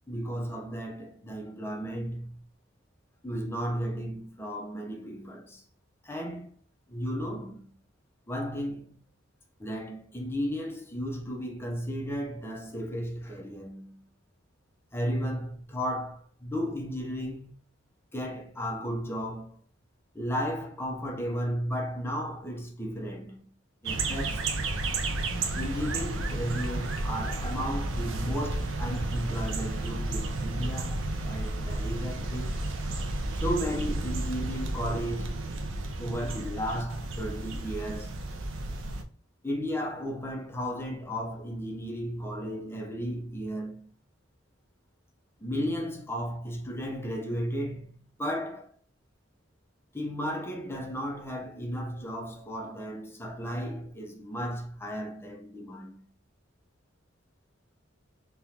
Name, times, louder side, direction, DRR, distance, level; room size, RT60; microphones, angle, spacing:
voice 1, 0.1-2.4 3.2-5.6 6.0-6.5 6.9-7.7 8.3-9.0 9.6-14.0 14.9-17.6 18.1-19.6 20.1-23.5 23.8-24.6 25.3-32.6 33.3-35.5 36.0-38.1 39.4-43.9 45.4-48.7 49.9-56.0, equal, 10° left, 0.6 m, -34 dB
sound 1, 23.8-39.0, right 2 dB, 70° right, 0.5 m, -32 dB
3.6 x 2.9 x 2.8 m
head